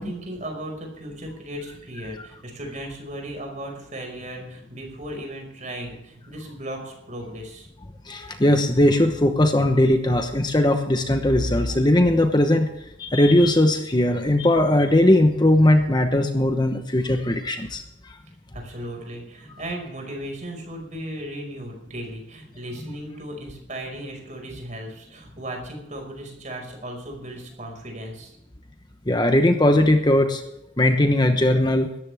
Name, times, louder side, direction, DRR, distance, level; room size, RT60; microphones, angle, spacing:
voice 1, 0.0-7.7 18.5-28.4, right 1 dB, 40° right, 2 dB, 5.4 m, -36 dB
voice 2, 8.1-12.7 13.0-17.8 29.1-30.4 30.8-31.9, left 1 dB, 20° left, 6 dB, 1.0 m, -19 dB
18.5 x 14.0 x 3.5 m, 0.83 s
head